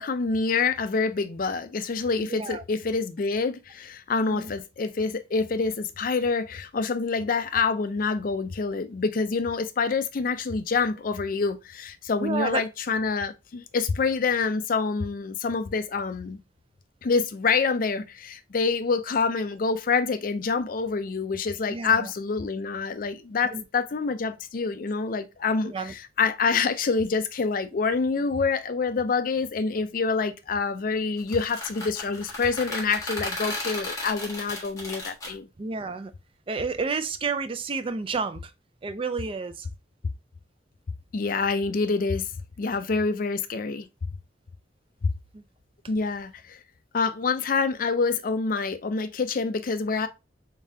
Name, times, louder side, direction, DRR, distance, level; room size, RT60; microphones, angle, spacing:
voice 1, 0.0-16.4 17.0-35.5 41.1-43.9 45.0-45.1 45.9-46.6 46.9-50.1, left 4 dB, 50° left, 0.4 m, -26 dB
voice 2, 2.2-2.6 4.2-4.5 12.2-12.6 21.7-22.1 23.5-23.6 25.6-25.9 35.6-36.1 36.5-38.5 38.8-39.7 45.3-45.4, right 4 dB, 30° right, 0.4 m, -30 dB
sound 1, 31.2-35.3, left 2 dB, 20° left, 1.4 m, -34 dB
3.9 x 3.6 x 2.6 m
head